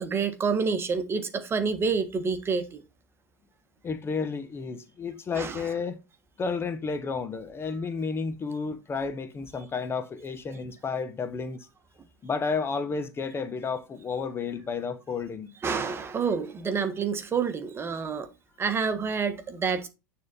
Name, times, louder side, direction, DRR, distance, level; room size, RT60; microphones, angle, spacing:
voice 1, 0.0-2.8 5.3-5.6 15.6-18.3 18.6-19.9, right 5 dB, 25° right, 1.4 m, -28 dB
voice 2, 3.8-6.0 6.4-11.7 12.2-15.5, left 5 dB, 25° left, 1.0 m, -31 dB
9.2 x 3.8 x 4.1 m
hypercardioid pair, 90°, 10 cm